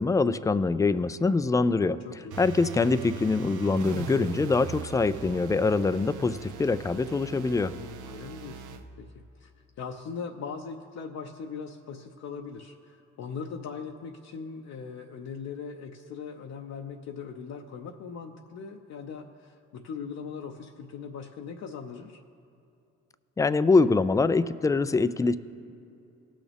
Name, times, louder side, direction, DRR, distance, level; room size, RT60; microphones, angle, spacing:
voice 1, 0.0-2.0 2.4-7.7 23.4-25.4, left 3 dB, 10° left, 15 dB, 0.3 m, -24 dB
sound 1, 2.3-8.9, right 7 dB, 70° right, 0.8 m, -40 dB
voice 2, 7.7-8.7 9.0-9.5 9.8-22.2, left 6 dB, 60° left, 2 dB, 0.7 m, -40 dB
18.0 x 6.3 x 3.5 m, 2.7 s
supercardioid pair, 65°, 31 cm